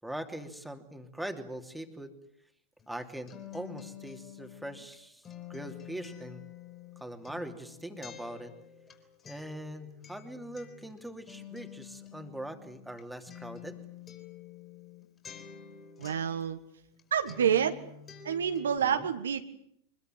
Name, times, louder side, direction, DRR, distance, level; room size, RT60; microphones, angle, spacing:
voice 1, 0.0-2.1 2.9-5.2 5.5-6.4 7.0-8.5 9.2-13.8 18.8-19.1, right 1 dB, ahead, 5 dB, 2.9 m, -41 dB
Acoustic guitar, 2.8-17.0 17.3-18.8, left 9 dB, 25° left, 5.3 m, -49 dB
voice 2, 16.0-16.6 17.1-17.8 18.2-19.4, right 8 dB, 65° right, 9 dB, 1.6 m, -28 dB
24.5 x 22.0 x 9.4 m, 0.69 s
figure-of-eight pair, 90°, 0 cm